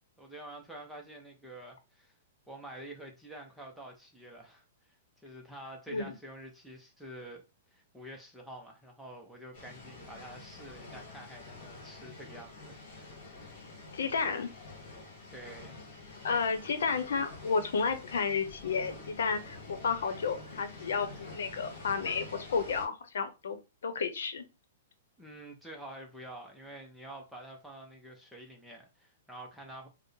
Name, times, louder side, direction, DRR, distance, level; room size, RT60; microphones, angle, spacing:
voice 1, 0.2-2.1 2.5-7.4 7.7-13.2 15.3-15.8 25.2-29.9, right 1 dB, ahead, 0.5 m, -48 dB
sound 1, 9.5-22.9, left 3 dB, 40° left, 1.6 m, -48 dB
voice 2, 13.9-14.5 16.2-23.6 23.8-24.4, left 5 dB, 85° left, 0.7 m, -32 dB
4.4 x 2.0 x 3.2 m
hypercardioid pair, 175°, 0 cm